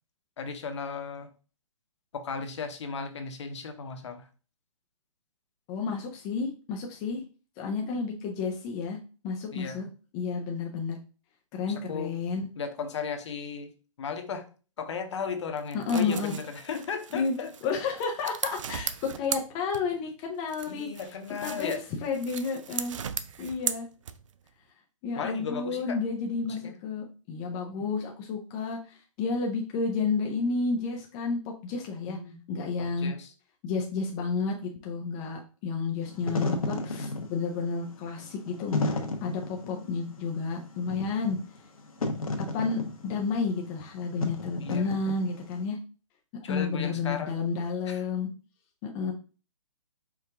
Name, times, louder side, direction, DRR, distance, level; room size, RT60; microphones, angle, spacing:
voice 1, 0.4-1.3 2.1-4.3 9.5-9.8 11.7-12.1 12.6-13.7 14.0-14.4 14.8-17.7 20.7-21.8 25.2-26.0 26.4-26.7 32.1-32.4 32.8-33.3 44.6-44.9 46.4-47.4 47.9-48.0, left 5 dB, 55° left, 6 dB, 0.9 m, -35 dB
voice 2, 5.7-7.2 7.6-9.0 9.2-9.9 10.1-11.0 11.5-12.5 15.7-16.3 17.1-17.4 17.6-20.9 21.4-21.7 22.0-23.0 23.4-23.9 25.0-32.2 32.5-33.1 33.6-38.9 39.2-41.4 42.5-45.8 46.5-48.3 48.8-49.1, left 4 dB, 15° left, 1 dB, 0.3 m, -31 dB
sound 1, 15.6-20.1 20.5-24.5, right 8 dB, 65° right, 0.4 m, -37 dB
Wind / Fire, 36.0-45.6, left 2 dB, 90° left, 1.0 m, -33 dB
4.7 x 2.4 x 3.5 m, 0.36 s
hypercardioid pair, 150°, 17 cm